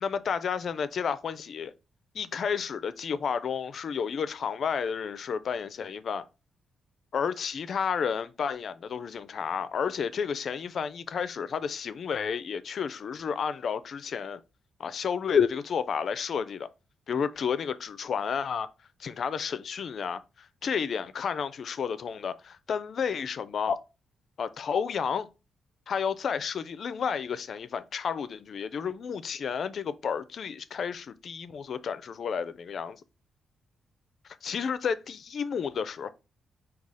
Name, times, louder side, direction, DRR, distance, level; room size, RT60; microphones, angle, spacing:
voice 1, 0.0-1.7 2.1-6.2 7.1-14.4 14.8-16.7 17.1-18.7 19.0-23.8 24.4-25.3 25.9-33.0 34.4-36.1, left 6 dB, 60° left, 0.4 m, -31 dB
4.7 x 2.3 x 4.0 m
cardioid pair, 85°, 0 cm